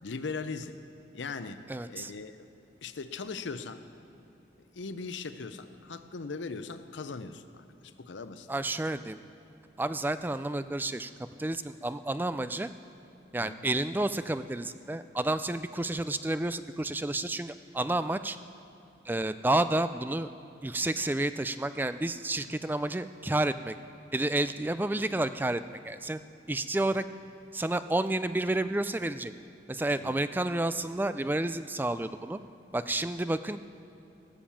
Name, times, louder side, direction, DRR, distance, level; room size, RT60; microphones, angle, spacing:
voice 1, 0.0-0.8 1.1-1.6 1.9-2.5 2.8-3.8 4.7-8.5 13.4-13.6 30.0-30.2, left 4 dB, 90° left, 11 dB, 0.7 m, -39 dB
voice 2, 1.7-2.1 8.5-9.2 9.8-12.7 13.3-18.4 19.1-20.3 20.6-23.8 24.1-26.2 26.5-27.0 27.5-29.3 29.7-32.4 32.7-33.6, right 2 dB, 10° right, 12 dB, 0.3 m, -30 dB
17.5 x 7.3 x 7.2 m, 2.8 s
head